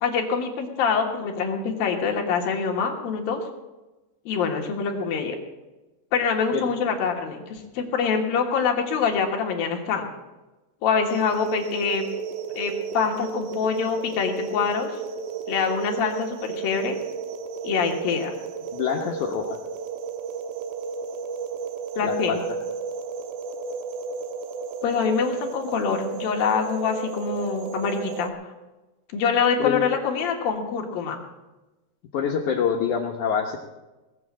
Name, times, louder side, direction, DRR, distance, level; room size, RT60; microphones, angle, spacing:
voice 1, 0.0-3.4 4.3-5.4 6.1-10.1 10.8-12.1 12.6-14.9 15.5-17.0 17.6-18.3 22.0-22.4 24.8-28.5 29.1-31.2, left 6 dB, 65° left, 1 dB, 3.0 m, -25 dB
sound 1, 11.1-28.3, right 5 dB, 85° right, 3.1 m, -33 dB
voice 2, 18.7-19.5 22.0-22.4 29.6-29.9 32.1-33.6, left 7 dB, 80° left, 1 dB, 1.7 m, -25 dB
19.0 x 7.1 x 8.4 m, 1.1 s
omnidirectional pair, 4.9 m